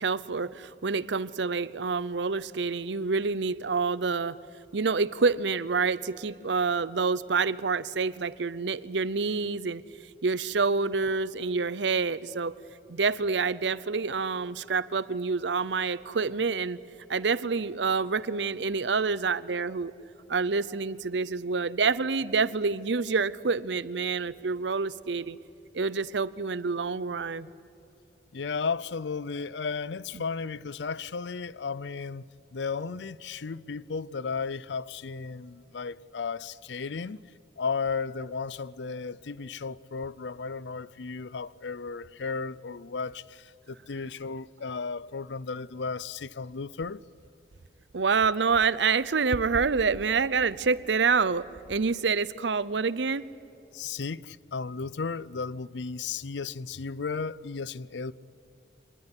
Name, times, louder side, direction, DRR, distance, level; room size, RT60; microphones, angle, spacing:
voice 1, 0.0-4.4 4.7-9.8 10.2-12.5 12.9-16.8 17.1-19.9 20.3-25.4 25.7-27.5 30.1-30.2 47.9-53.3, right 4 dB, 85° right, 0.7 m, -27 dB
voice 2, 28.3-37.2 37.6-47.0 53.7-58.1, left 5 dB, 85° left, 0.6 m, -34 dB
25.0 x 19.5 x 9.9 m
head